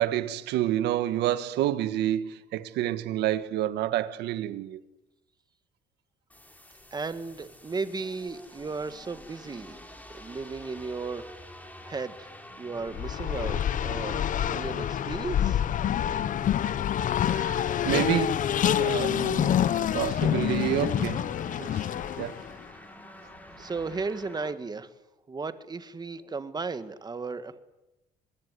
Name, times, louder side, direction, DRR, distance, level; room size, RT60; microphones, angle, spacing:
voice 1, 0.0-4.8 17.3-18.5 18.8-19.5 19.9-21.3 21.6-21.8 22.2-22.4, right 13 dB, 80° right, 1.6 m, -28 dB
sound 1, 6.3-24.5, left 1 dB, 10° left, 4.4 m, -49 dB
voice 2, 6.9-9.8 10.1-11.3 11.8-12.3 12.6-15.6 23.6-24.9 25.3-27.6, right 4 dB, 25° right, 1.8 m, -35 dB
Race car auto racing, 12.9-22.5, left 10 dB, 50° left, 0.9 m, -27 dB
24.0 x 20.5 x 9.6 m
cardioid pair, 110°, 17 cm